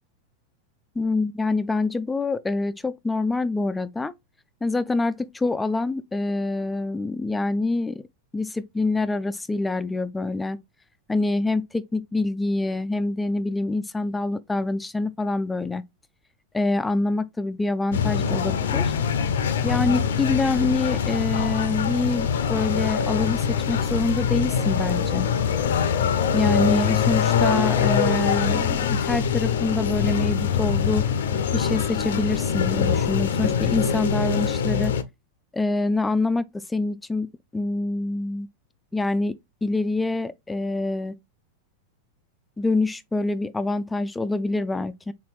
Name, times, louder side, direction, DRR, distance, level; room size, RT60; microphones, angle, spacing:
voice 1, 1.0-4.1 4.6-8.0 8.3-10.6 11.1-15.8 16.5-18.9 19.6-25.3 26.3-31.1 31.5-34.9 35.5-38.5 38.9-39.3 39.6-41.1 42.6-45.1, left 2 dB, 10° left, 0.3 m, -26 dB
sound 1, 17.9-35.0, left 7 dB, 60° left, 0.5 m, -23 dB
4.2 x 3.7 x 3.0 m
figure-of-eight pair, 90°, 0 cm